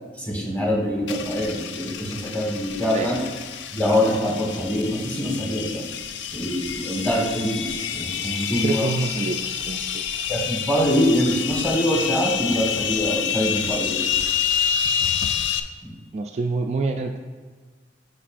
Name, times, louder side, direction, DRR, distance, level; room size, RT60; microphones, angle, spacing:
voice 1, 0.2-3.2 3.7-5.8 6.3-8.9 10.3-14.0 15.8-15.9, equal, 10° left, -3 dB, 1.5 m, -24 dB
sound 1, 1.1-15.6, left 8 dB, 75° left, 0.4 m, -28 dB
voice 2, 8.6-10.0 16.1-17.2, right 3 dB, 40° right, 4 dB, 0.3 m, -27 dB
9.9 x 5.4 x 2.5 m, 1.5 s
head